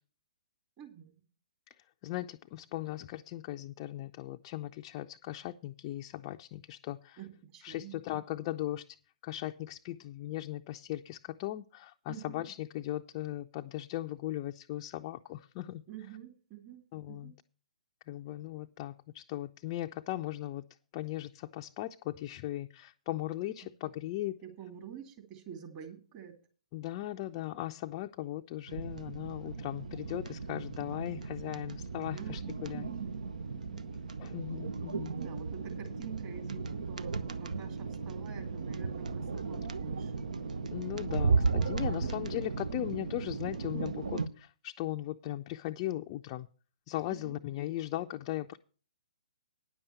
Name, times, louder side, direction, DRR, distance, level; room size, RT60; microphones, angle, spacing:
voice 1, 0.8-1.2 7.2-7.9 12.1-12.5 15.9-17.3 23.6-23.7 24.4-26.3 32.1-33.2 33.5-33.9 35.1-40.4 42.0-42.1 47.1-47.4, right 9 dB, 30° right, 2.5 m, -48 dB
voice 2, 1.8-7.2 7.6-8.9 9.2-15.8 16.9-17.3 18.1-20.6 20.9-24.4 26.7-32.9 34.2-35.1 40.7-46.5 46.9-48.6, left 15 dB, 30° left, 0.4 m, -38 dB
sound 1, 28.7-44.3, right 4 dB, 70° right, 0.8 m, -35 dB
9.9 x 7.0 x 6.8 m
figure-of-eight pair, 130°, 4 cm